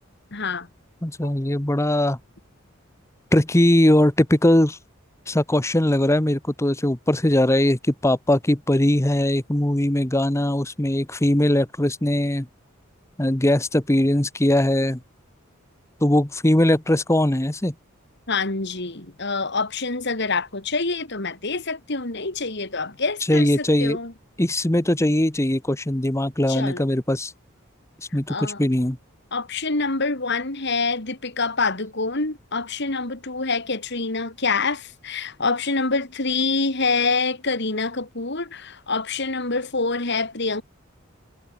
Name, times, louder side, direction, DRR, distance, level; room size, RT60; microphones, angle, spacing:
voice 1, 0.3-0.7 1.2-1.3 18.3-24.1 26.5-26.9 28.3-28.6 29.3-40.6, left 3 dB, 55° left, 3.3 m, -26 dB
voice 2, 1.0-2.2 3.3-4.8 5.3-12.5 13.2-15.0 16.0-17.7 23.3-24.0 24.4-27.3 28.1-29.0, left 1 dB, 15° left, 1.1 m, -20 dB
head